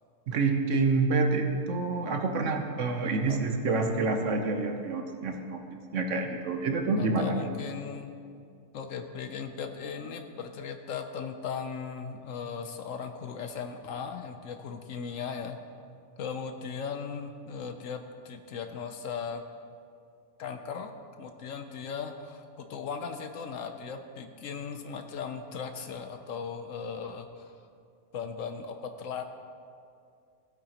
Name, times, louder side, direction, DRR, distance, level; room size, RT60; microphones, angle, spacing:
voice 1, 0.3-5.6 5.9-7.4, right 3 dB, 60° right, 4 dB, 1.1 m, -27 dB
voice 2, 3.3-4.2 7.0-8.2 8.7-15.6 16.2-19.4 20.4-20.9 21.2-27.5 28.1-29.2, left 6 dB, 65° left, 7 dB, 0.9 m, -38 dB
15.5 x 8.8 x 2.9 m, 2.4 s
omnidirectional pair, 1.5 m